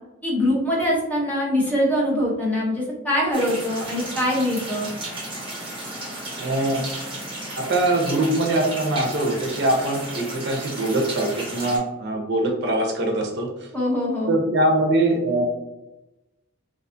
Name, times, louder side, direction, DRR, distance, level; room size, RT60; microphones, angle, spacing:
voice 1, 0.2-4.9 13.7-14.4, left 1 dB, 10° left, -4 dB, 0.7 m, -23 dB
sound 1, 3.3-11.8, right 1 dB, 25° right, 0.9 m, -34 dB
voice 2, 6.4-6.8 7.6-13.5 14.3-15.4, right 1 dB, 60° right, 1 dB, 0.5 m, -22 dB
2.5 x 2.3 x 2.5 m, 0.98 s
head